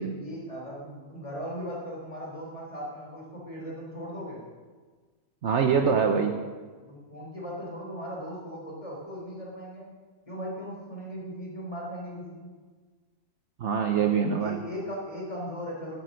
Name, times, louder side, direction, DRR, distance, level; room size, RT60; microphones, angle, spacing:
voice 1, 0.0-4.4 6.8-9.9 10.3-12.5 13.9-16.0, equal, 25° left, -3 dB, 3.4 m, -38 dB
voice 2, 5.4-6.3 13.6-14.6, right 6 dB, 60° right, 5 dB, 1.0 m, -24 dB
11.0 x 9.6 x 6.4 m, 1.4 s
omnidirectional pair, 1.5 m